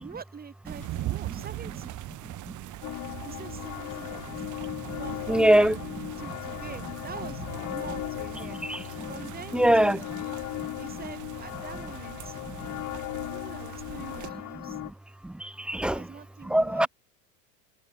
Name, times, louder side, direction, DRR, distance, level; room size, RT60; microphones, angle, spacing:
voice 1, 0.0-2.0 3.2-4.4 5.0-5.8 6.2-8.6 9.1-10.4 10.8-12.4 13.2-14.8 15.8-16.9, right 6 dB, 20° right, 7.7 m, -45 dB
sound 1, 0.7-14.3, right 16 dB, 45° right, 7.4 m, -41 dB
sound 2, 0.8-2.6 3.9-14.2, left 13 dB, 85° left, 7.7 m, -53 dB
sound 3, 2.8-14.9, left 18 dB, 45° left, 3.0 m, -37 dB
voice 2, 5.3-5.8 8.5-9.1 9.5-10.1 15.2-16.1 16.5-16.9, right 1 dB, 5° right, 0.3 m, -23 dB
hypercardioid pair, 110°, 40 cm